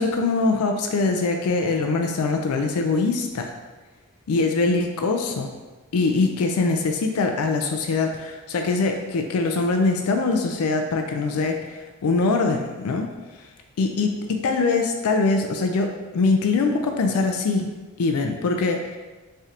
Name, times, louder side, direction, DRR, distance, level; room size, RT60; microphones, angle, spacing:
voice 1, 0.0-3.5 4.3-5.5 5.9-13.1 13.8-14.1 14.4-17.7 18.0-19.0, left 3 dB, 90° left, 4 dB, 0.4 m, -23 dB
3.6 x 3.3 x 2.8 m, 1.2 s
head